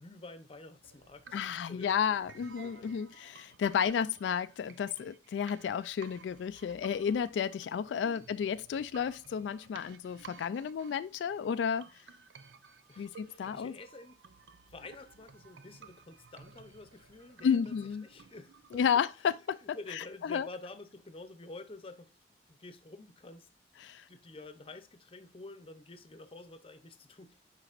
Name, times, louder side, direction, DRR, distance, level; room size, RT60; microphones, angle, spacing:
voice 1, 0.0-1.9 2.6-3.0 12.9-14.2 14.7-17.7 18.0-18.9 19.7-22.1 22.5-23.5 24.1-27.4, left 2 dB, 30° left, 0.7 m, -49 dB
sound 1, 0.8-18.8, right 5 dB, 90° right, 0.6 m, -56 dB
voice 2, 1.3-11.9 13.0-13.7 17.4-18.0 18.7-20.5 23.8-24.0, left 7 dB, 85° left, 0.3 m, -32 dB
9.9 x 4.0 x 2.5 m
head